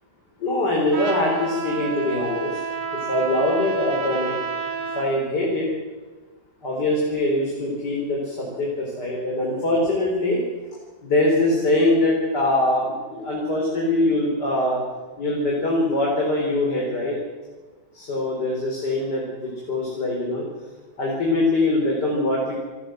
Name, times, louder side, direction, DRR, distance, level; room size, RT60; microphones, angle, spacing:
voice 1, 0.4-2.6 3.1-4.4 4.9-5.7 6.6-10.4 11.0-14.8 15.2-17.2 17.9-20.4 21.0-22.5, left 1 dB, 55° left, -2 dB, 4.7 m, -23 dB
Trumpet, 0.9-5.1, right 5 dB, 65° right, 2.3 m, -30 dB
29.0 x 15.0 x 7.8 m, 1.4 s
omnidirectional pair, 2.1 m